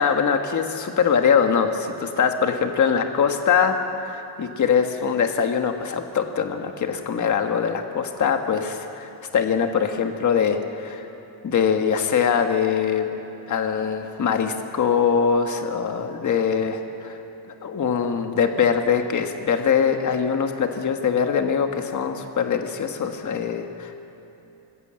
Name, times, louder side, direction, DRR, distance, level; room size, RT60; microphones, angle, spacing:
voice 1, 0.0-3.8 4.0-11.1 11.4-13.1 13.5-17.2 17.6-24.0, left 7 dB, 40° left, 5 dB, 1.4 m, -22 dB
26.0 x 20.5 x 7.6 m, 2.9 s
wide cardioid pair, 175°, 45 cm